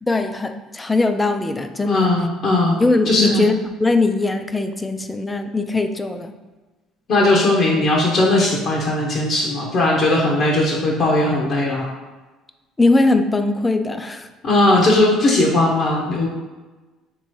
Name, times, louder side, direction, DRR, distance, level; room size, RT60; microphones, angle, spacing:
voice 1, 0.0-2.1 2.8-6.3 12.8-14.3, left 2 dB, 15° left, 7 dB, 0.3 m, -20 dB
voice 2, 1.8-2.8 3.1-3.4 7.1-11.9 14.4-16.3, left 2 dB, 50° left, -3 dB, 0.8 m, -18 dB
3.4 x 3.0 x 4.6 m, 1.2 s
cardioid pair, 125°, 0 cm